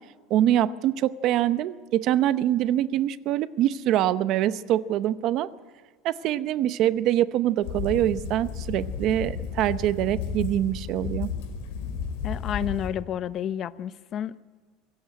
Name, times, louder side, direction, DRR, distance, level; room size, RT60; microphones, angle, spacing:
voice 1, 0.3-5.5 6.0-11.3, right 12 dB, 45° right, 14 dB, 0.7 m, -24 dB
sound 1, 7.6-12.9, left 6 dB, 80° left, 4.9 m, -33 dB
voice 2, 12.2-14.4, left 9 dB, 35° left, 15 dB, 0.6 m, -30 dB
24.0 x 15.5 x 9.5 m, 1.5 s
cardioid pair, 160°, 0 cm